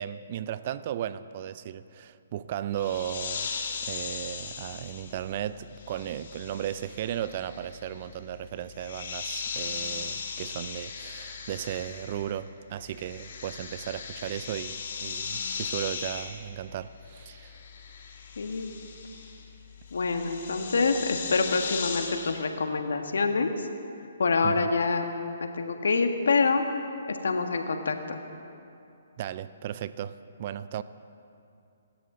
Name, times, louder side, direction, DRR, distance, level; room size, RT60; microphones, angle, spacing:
voice 1, 0.0-3.5 3.8-17.6 24.4-24.7 29.2-30.8, right 11 dB, 45° right, 15 dB, 0.5 m, -35 dB
sound 1, 2.7-12.5 12.7-22.5, left 5 dB, 55° left, 2.3 m, -38 dB
voice 2, 18.4-18.7 19.9-23.7 24.2-25.0 25.4-26.6 27.1-28.2, left 4 dB, 75° left, 6 dB, 1.5 m, -26 dB
26.5 x 13.0 x 3.9 m, 2.6 s
hypercardioid pair, 135°, 0 cm